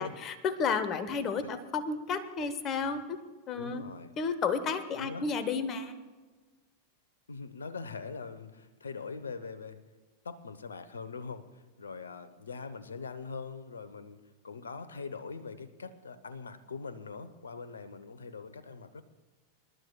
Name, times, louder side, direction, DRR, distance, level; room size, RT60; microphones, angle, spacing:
voice 1, 0.0-3.2 3.5-3.8 4.2-5.9, left 5 dB, 30° left, 11 dB, 1.2 m, -32 dB
voice 2, 3.5-4.1 5.0-5.3 7.3-9.8 10.2-19.0, left 4 dB, 70° left, 12 dB, 1.0 m, -42 dB
26.5 x 12.5 x 2.4 m, 1.3 s
figure-of-eight pair, 90°, 0 cm